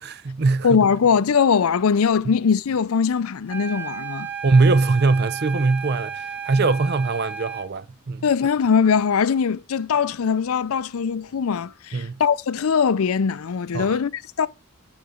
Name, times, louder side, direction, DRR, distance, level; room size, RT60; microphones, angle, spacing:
voice 1, 0.0-0.8 4.4-8.2 11.9-12.2 13.7-14.0, right 3 dB, 45° right, 0.5 m, -21 dB
voice 2, 0.6-4.3 8.2-14.5, left 6 dB, 75° left, 0.5 m, -21 dB
sound 1, 3.5-7.7, right 7 dB, 10° right, 1.0 m, -33 dB
10.0 x 4.0 x 5.0 m
head